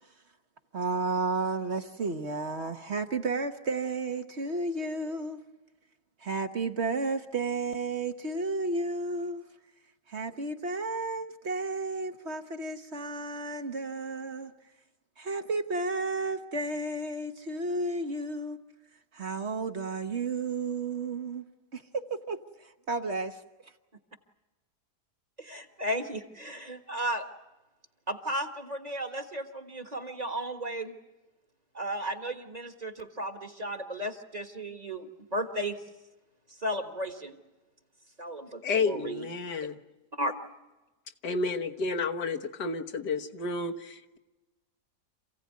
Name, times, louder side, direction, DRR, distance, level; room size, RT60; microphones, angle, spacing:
voice 1, 0.7-5.4 6.2-9.4 10.1-14.5 15.2-18.6 19.1-21.4 21.7-23.4, right 3 dB, 45° right, 7 dB, 1.2 m, -32 dB
voice 2, 25.4-27.3 28.1-31.0 31.7-35.8 36.5-37.4 38.2-39.2 40.1-40.3, right 1 dB, 25° right, 7 dB, 1.5 m, -34 dB
voice 3, 38.6-39.8 41.2-44.2, left 4 dB, 80° left, 4 dB, 1.9 m, -31 dB
27.5 x 16.0 x 9.4 m, 1.1 s
omnidirectional pair, 1.7 m